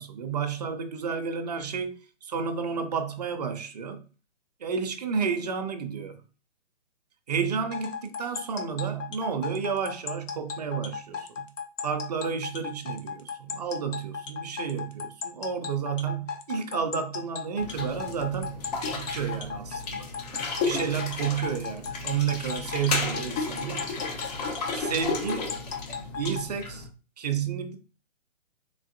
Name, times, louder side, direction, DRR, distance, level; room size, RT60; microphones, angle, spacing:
voice 1, 0.0-1.9 2.2-4.0 4.6-6.2 7.3-11.5 11.8-18.6 18.9-20.1 20.6-23.9 24.7-25.6 26.2-26.9 27.2-27.8, right 6 dB, 35° right, 0.4 m, -31 dB
sound 1, 7.7-26.5, left 6 dB, 80° left, 1.0 m, -36 dB
sound 2, 17.6-26.9, left 3 dB, 30° left, 0.8 m, -33 dB
3.8 x 3.6 x 2.5 m
hypercardioid pair, 150°, 38 cm